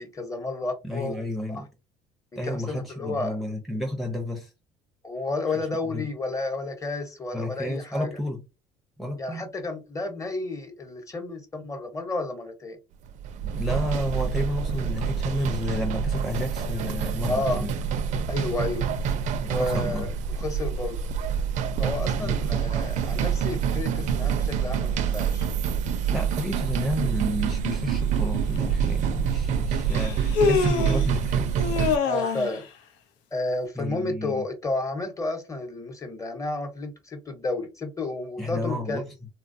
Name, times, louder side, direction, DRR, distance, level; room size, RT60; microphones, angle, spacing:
voice 1, 0.0-1.7 2.3-3.4 5.0-8.1 9.2-12.8 17.3-17.6 18.3-18.9 19.5-21.0 21.8-25.5 32.0-32.7 33.3-39.0, left 2 dB, 25° left, 0.9 m, -31 dB
voice 2, 0.8-1.7 2.4-4.5 5.5-6.1 7.3-8.4 9.0-9.5 13.4-17.7 19.4-20.1 22.2-22.6 26.1-31.5 33.8-34.4 38.4-39.1, left 1 dB, ahead, 0.6 m, -31 dB
sound 1, 13.1-32.0, right 7 dB, 60° right, 0.5 m, -27 dB
Human voice, 28.6-28.7 29.9-31.1 31.6-32.6, left 5 dB, 85° left, 0.6 m, -25 dB
3.2 x 2.3 x 2.6 m
supercardioid pair, 90°, 14 cm